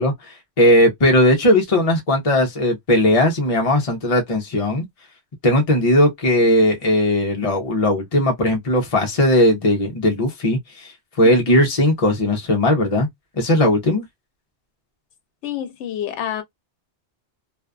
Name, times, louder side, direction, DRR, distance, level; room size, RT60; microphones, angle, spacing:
voice 1, 0.0-4.8 5.4-10.9 11.2-13.1 13.4-14.0, left 1 dB, 40° left, 0.6 m, -18 dB
voice 2, 11.2-11.6 15.4-16.4, left 9 dB, 85° left, 0.9 m, -28 dB
2.5 x 2.3 x 2.3 m
omnidirectional pair, 1.2 m